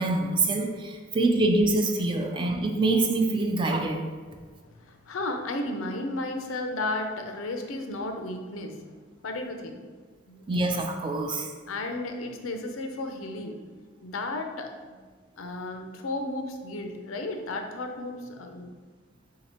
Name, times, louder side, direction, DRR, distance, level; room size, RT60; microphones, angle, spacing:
voice 1, 0.0-4.0 10.5-11.5, right 2 dB, 25° right, 3 dB, 0.4 m, -25 dB
voice 2, 4.6-8.8 9.2-9.8 10.3-10.4 11.7-13.5 14.0-15.0 15.4-18.7, left 2 dB, 85° left, 4 dB, 0.5 m, -33 dB
3.9 x 2.8 x 4.2 m, 1.5 s
head